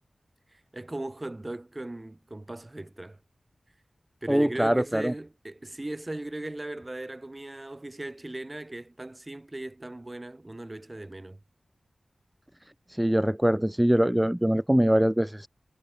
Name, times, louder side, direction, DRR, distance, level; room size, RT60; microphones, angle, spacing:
voice 1, 0.5-3.2 4.2-11.4, right 2 dB, 30° right, 4.8 m, -38 dB
voice 2, 4.3-5.1 12.9-15.5, equal, 10° right, 1.7 m, -23 dB
wide cardioid pair, 55°, 0 cm